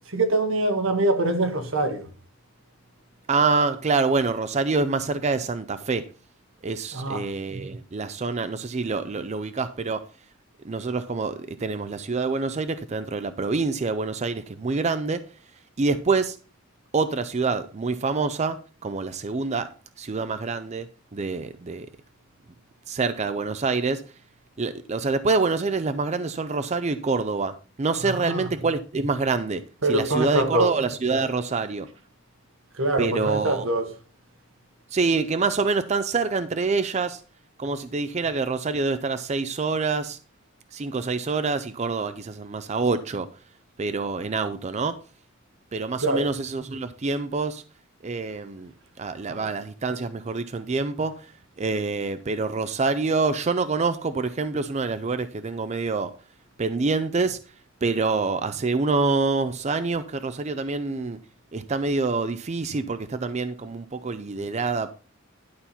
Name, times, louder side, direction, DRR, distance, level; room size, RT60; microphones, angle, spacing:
voice 1, 0.1-2.1 6.9-7.2 28.2-28.4 29.8-30.7 32.8-33.9 46.0-46.3 49.3-49.5, right 2 dB, 85° right, 1.5 m, -24 dB
voice 2, 3.3-6.1 6.6-10.1 10.6-15.2 15.8-16.4 16.9-19.7 20.0-21.9 22.9-24.0 24.6-31.9 33.0-33.7 34.9-37.2 37.6-40.2 40.7-43.3 43.8-45.0 45.7-47.6 48.0-48.7 49.0-51.3 51.6-56.1 56.6-57.4 57.8-61.2 61.5-64.9, right 4 dB, 35° right, 0.5 m, -26 dB
11.5 x 4.2 x 5.6 m
head